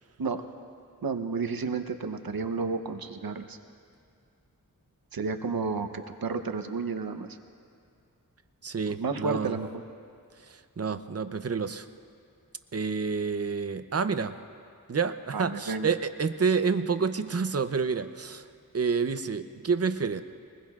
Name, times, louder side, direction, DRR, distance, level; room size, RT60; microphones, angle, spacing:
voice 1, 1.0-3.6 5.1-7.4 9.0-9.7 15.3-15.9, right 4 dB, 85° right, 8 dB, 0.8 m, -31 dB
voice 2, 8.6-9.5 10.5-11.9 12.7-14.3 14.9-18.5 18.7-20.2, right 5 dB, 45° right, 11 dB, 0.6 m, -28 dB
23.0 x 20.5 x 2.4 m, 2.4 s
wide cardioid pair, 75°, 35 cm